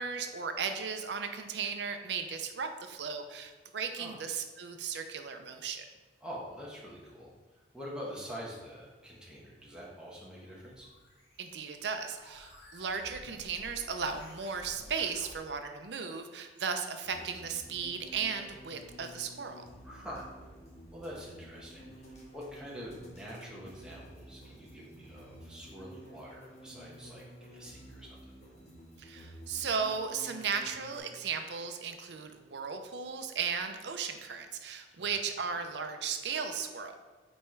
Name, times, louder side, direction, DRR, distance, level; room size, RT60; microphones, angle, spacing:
voice 1, 0.0-5.8 11.4-19.6 29.0-37.0, right 6 dB, 75° right, 6 dB, 0.6 m, -36 dB
voice 2, 6.2-7.3 7.7-10.9 19.8-20.3 20.9-28.2 35.0-35.1, equal, 5° right, -5 dB, 1.1 m, -45 dB
sound 1, 10.4-15.4, left 1 dB, 70° left, 1.7 m, -53 dB
sound 2, 17.0-31.0, equal, 40° left, 1.2 m, -51 dB
5.4 x 4.3 x 4.5 m, 1.3 s
head